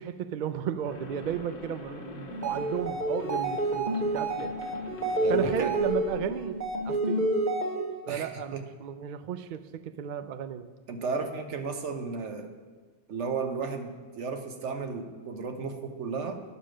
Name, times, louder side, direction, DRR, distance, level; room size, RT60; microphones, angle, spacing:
voice 1, 0.0-4.5 5.3-7.3 8.1-10.7, right 8 dB, 85° right, 12 dB, 0.4 m, -34 dB
sound 1, 0.8-6.9, left 3 dB, 45° left, 1.0 m, -46 dB
sound 2, 2.3-8.1, right 2 dB, 35° right, 1.1 m, -29 dB
voice 2, 5.2-5.7 8.1-8.6 10.9-12.5 13.1-16.4, right 5 dB, 65° right, 6 dB, 1.2 m, -34 dB
10.0 x 6.5 x 6.2 m, 1.4 s
omnidirectional pair, 1.4 m